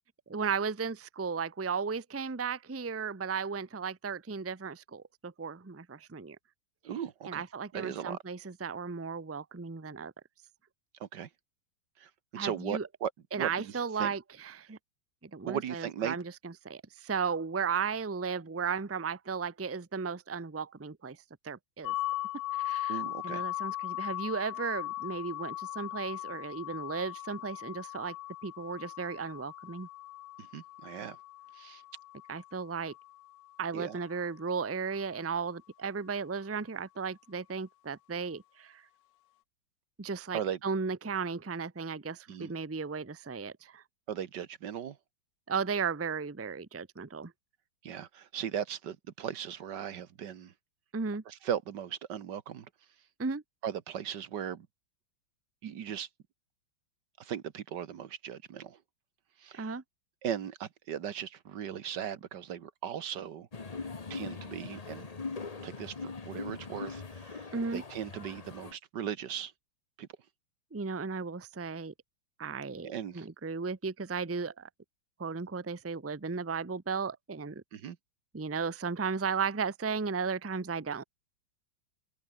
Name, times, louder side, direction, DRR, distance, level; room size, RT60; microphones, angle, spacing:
voice 1, 0.3-6.4 7.2-10.1 12.3-12.9 13.3-14.8 15.3-21.2 21.4-21.9 22.5-28.1 28.4-29.9 32.3-32.9 33.6-38.8 40.0-43.8 45.5-47.3 50.9-51.2 53.2-53.4 59.5-59.8 67.5-67.8 70.7-71.9 72.4-74.7 75.2-77.6 78.3-81.0, right 5 dB, 15° right, 0.5 m, -35 dB
voice 2, 6.9-7.4 7.7-8.2 11.0-11.3 12.0-13.1 13.4-13.7 14.0-14.1 15.4-16.2 22.9-23.4 30.4-31.2 31.6-31.8 33.7-34.0 40.3-40.6 42.3-42.5 44.1-45.0 47.8-50.5 51.3-52.7 53.6-54.7 55.6-56.1 57.2-58.8 59.4-59.7 60.2-63.5 64.1-65.1 65.6-69.5 70.0-70.1 72.8-73.3 77.7-78.0, right 9 dB, 60° right, 1.8 m, -38 dB
sound 1, 21.8-33.6, left 16 dB, 75° left, 1.1 m, -39 dB
sound 2, 63.5-68.7, left 4 dB, 25° left, 0.9 m, -41 dB
omnidirectional pair, 2.2 m